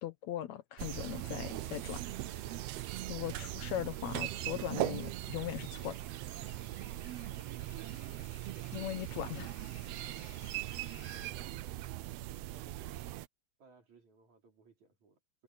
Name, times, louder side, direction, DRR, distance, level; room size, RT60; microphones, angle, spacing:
voice 1, 0.0-2.0 3.1-6.0 8.7-9.5, left 12 dB, 70° left, 2.0 m, -39 dB
sound 1, 0.8-11.3, left 3 dB, 40° left, 5.2 m, -59 dB
sound 2, 0.8-13.3, right 16 dB, 80° right, 1.4 m, -40 dB
voice 2, 7.2-7.5 8.0-8.3 11.1-13.1 13.6-15.4, right 3 dB, 65° right, 6.3 m, -63 dB
omnidirectional pair, 3.6 m